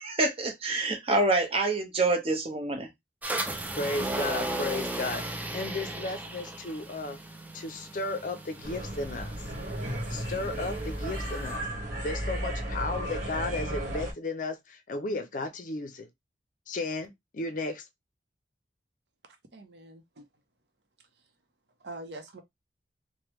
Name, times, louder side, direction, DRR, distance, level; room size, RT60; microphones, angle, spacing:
voice 1, 0.0-2.9, right 2 dB, 35° right, 0.8 m, -26 dB
sound 1, 3.2-11.6, right 1 dB, 10° right, 0.4 m, -36 dB
voice 2, 3.7-7.2 7.5-9.3 10.1-11.7 12.0-16.1 16.7-17.9, left 2 dB, 45° left, 0.5 m, -34 dB
sound 2, 8.6-14.1, right 1 dB, 50° right, 1.2 m, -34 dB
voice 3, 19.5-20.2 21.8-22.4, right 2 dB, 70° right, 0.7 m, -43 dB
3.3 x 2.1 x 3.0 m
head